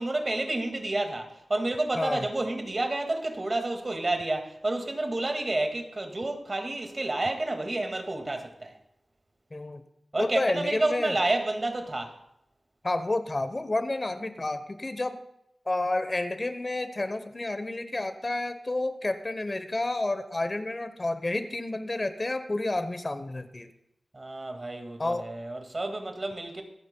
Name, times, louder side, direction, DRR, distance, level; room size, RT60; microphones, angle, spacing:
voice 1, 0.0-8.8 10.1-12.2 24.1-26.6, right 2 dB, 45° right, 2.0 m, -30 dB
voice 2, 1.9-2.3 9.5-9.8 10.2-11.2 12.8-15.2 15.7-23.7 25.0-25.3, left 2 dB, 40° left, 0.9 m, -30 dB
24.5 x 9.1 x 2.2 m
cardioid pair, 50°, 0 cm